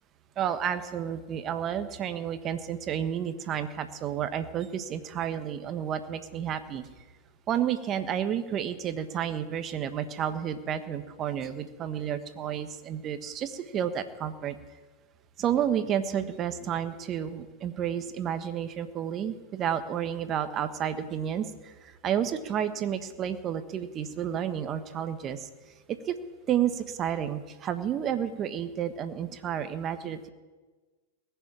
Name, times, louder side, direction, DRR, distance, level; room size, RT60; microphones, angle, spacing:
voice 1, 0.4-6.9 7.5-14.6 15.4-25.4 25.9-26.1 26.5-30.3, right 9 dB, 35° right, 10 dB, 1.3 m, -31 dB
20.0 x 7.1 x 8.9 m, 1.3 s
hypercardioid pair, 100°, 0 cm